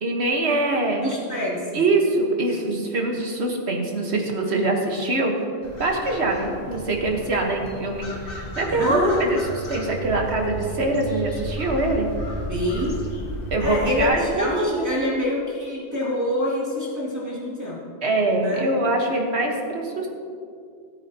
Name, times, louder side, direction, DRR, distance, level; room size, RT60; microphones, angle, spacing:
voice 1, 0.0-1.1 1.7-5.3 5.8-9.4 9.7-12.1 13.5-15.1 18.0-20.1, right 2 dB, 75° right, 1 dB, 1.7 m, -23 dB
voice 2, 1.0-1.8 8.7-9.4 12.5-13.0 13.6-17.8 18.4-18.7, left 1 dB, 15° right, -8 dB, 2.8 m, -26 dB
sound 1, 5.6-14.1, equal, 55° left, 1.8 m, -34 dB
17.5 x 8.9 x 2.9 m, 2.2 s
omnidirectional pair, 1.1 m